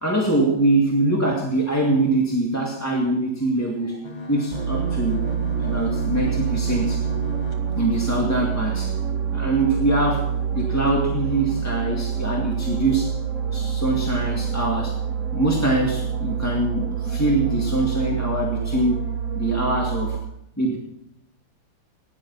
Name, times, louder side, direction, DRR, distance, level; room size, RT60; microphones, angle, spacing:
voice 1, 0.0-5.3 5.6-7.1 7.8-9.0 9.3-13.2 13.5-15.0 15.3-20.2 20.6-20.8, right 2 dB, 10° left, -2 dB, 1.8 m, -23 dB
sound 1, 4.0-9.1 9.6-9.7 10.0-10.2 10.6-10.9, left 1 dB, 80° left, 3.3 m, -37 dB
sound 2, 4.5-20.2, right 7 dB, 55° right, 1.0 m, -26 dB
17.5 x 11.0 x 5.6 m, 0.82 s
omnidirectional pair, 2.2 m